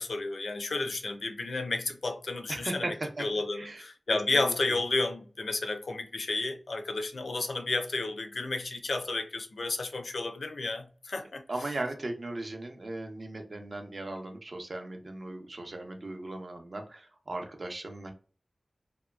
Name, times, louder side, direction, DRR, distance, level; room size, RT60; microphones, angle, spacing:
voice 1, 0.0-2.9 3.2-11.4, left 3 dB, 85° left, 0.5 m, -32 dB
voice 2, 2.5-3.2 3.5-3.8 4.3-4.5 11.5-18.1, right 2 dB, 55° right, 0.6 m, -37 dB
2.8 x 2.2 x 2.3 m
wide cardioid pair, 65°, 0 cm